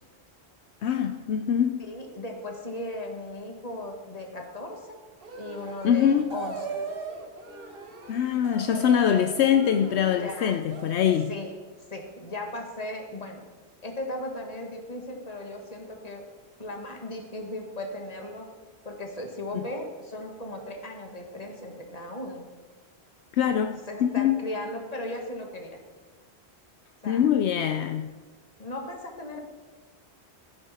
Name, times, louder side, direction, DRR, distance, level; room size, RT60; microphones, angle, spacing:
voice 1, 0.8-1.9 5.8-6.3 8.1-11.3 23.4-24.4 27.0-28.1, left 9 dB, 75° left, 8 dB, 0.9 m, -23 dB
voice 2, 1.9-5.0 5.4-6.8 10.2-10.6 11.3-11.5 11.9-13.4 13.8-16.2 16.6-18.5 18.9-22.5 23.5-23.6 23.9-25.8 27.0-27.2 28.6-29.4, left 1 dB, 35° left, 2 dB, 1.8 m, -37 dB
sound 1, 5.2-11.3, right 4 dB, 55° right, 1.4 m, -39 dB
14.5 x 10.5 x 4.3 m, 1.3 s
omnidirectional pair, 1.1 m